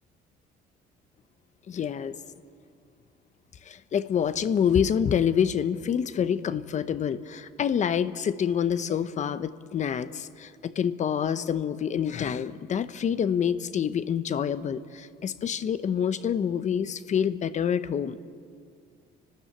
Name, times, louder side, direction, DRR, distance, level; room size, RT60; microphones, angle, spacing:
voice 1, 1.7-2.1 3.6-18.2, left 8 dB, 45° left, 13 dB, 0.9 m, -27 dB
29.5 x 12.5 x 8.8 m, 2.2 s
cardioid pair, 110°, 17 cm